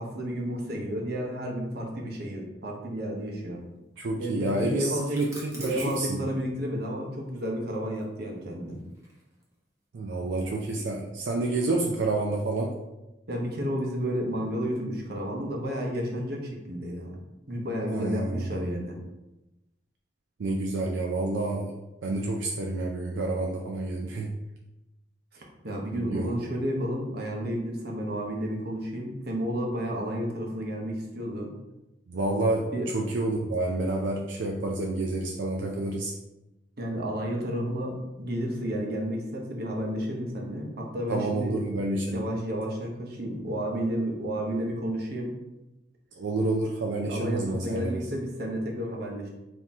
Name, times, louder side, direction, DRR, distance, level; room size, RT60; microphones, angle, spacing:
voice 1, 0.0-3.6 4.2-5.3 5.5-8.8 13.3-17.2 17.5-19.0 25.3-31.5 32.7-32.9 36.8-41.5 42.1-45.4 47.0-49.3, equal, 60° right, 0 dB, 0.9 m, -31 dB
voice 2, 4.0-6.2 9.9-12.7 17.9-18.7 20.4-24.3 25.9-26.3 32.1-36.1 41.1-42.2 46.2-48.0, right 2 dB, 85° right, 0 dB, 0.4 m, -29 dB
sound 1, 5.0-6.1 7.9-9.5, right 1 dB, 15° right, 0.9 m, -45 dB
4.1 x 2.8 x 3.5 m, 0.99 s
head